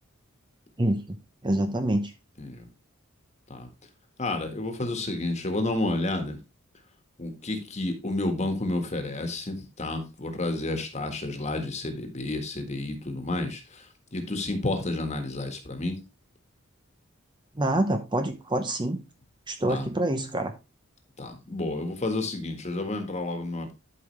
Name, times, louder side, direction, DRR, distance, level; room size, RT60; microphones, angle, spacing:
voice 1, 0.8-1.2 1.4-2.1 17.6-19.0 19.5-20.5, right 1 dB, 20° right, 7 dB, 0.8 m, -26 dB
voice 2, 4.2-6.4 7.2-13.8 14.1-16.0 19.7-19.9 21.2-23.7, left 2 dB, 35° left, 6 dB, 1.6 m, -30 dB
11.5 x 5.4 x 3.2 m, 0.26 s
head